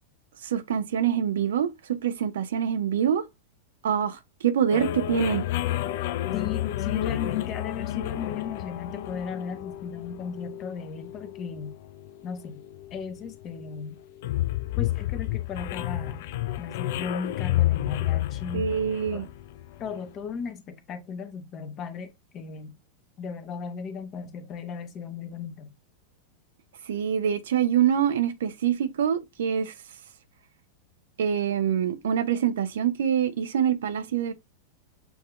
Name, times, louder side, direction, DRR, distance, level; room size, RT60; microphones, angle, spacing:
voice 1, 0.4-3.2 3.8-5.4 18.5-19.2 26.9-29.7 31.2-34.3, right 8 dB, 60° right, 0.6 m, -25 dB
sound 1, 4.7-20.1, left 14 dB, 50° left, 0.3 m, -31 dB
voice 2, 6.3-11.8 12.2-12.6 12.9-14.0 14.8-16.3 16.6-18.7 19.1-19.3 19.8-22.8 23.2-25.7, left 6 dB, 30° left, 0.9 m, -36 dB
7.0 x 2.8 x 2.3 m
figure-of-eight pair, 90°, 0 cm